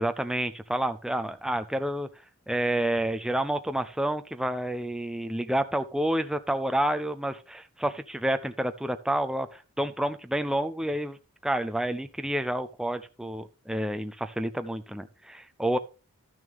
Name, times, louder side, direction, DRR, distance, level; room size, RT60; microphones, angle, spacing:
voice 1, 0.0-2.1 2.5-11.2 11.4-15.8, right 1 dB, 5° right, 9 dB, 0.4 m, -29 dB
12.5 x 6.3 x 3.5 m, 0.33 s
head